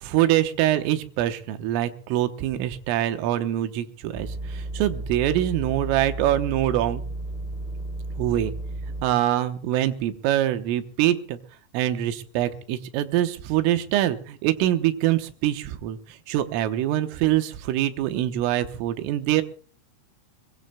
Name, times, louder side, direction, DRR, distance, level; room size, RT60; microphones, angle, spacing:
voice 1, 0.0-7.0 8.2-8.5 9.0-11.4 11.7-16.0 16.3-19.4, right 13 dB, 85° right, 8 dB, 3.6 m, -24 dB
sound 1, 4.1-9.0, right 2 dB, ahead, 2.2 m, -33 dB
22.5 x 22.0 x 2.3 m, 0.40 s
omnidirectional pair, 5.8 m